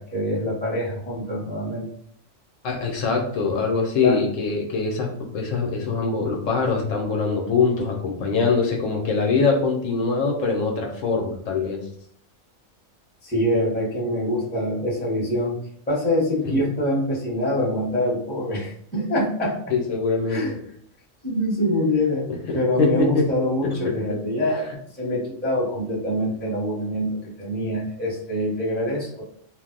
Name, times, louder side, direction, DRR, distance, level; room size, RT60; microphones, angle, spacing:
voice 1, 0.0-1.9 4.0-4.2 13.2-15.6 15.9-19.6 20.3-20.6 21.2-22.3 22.5-29.2, left 1 dB, 10° left, -6 dB, 0.8 m, -25 dB
voice 2, 2.6-11.8 16.5-16.6 19.7-20.4 22.5-23.3, left 4 dB, 75° left, 1 dB, 0.9 m, -23 dB
2.4 x 2.0 x 3.7 m, 0.65 s
omnidirectional pair, 1.4 m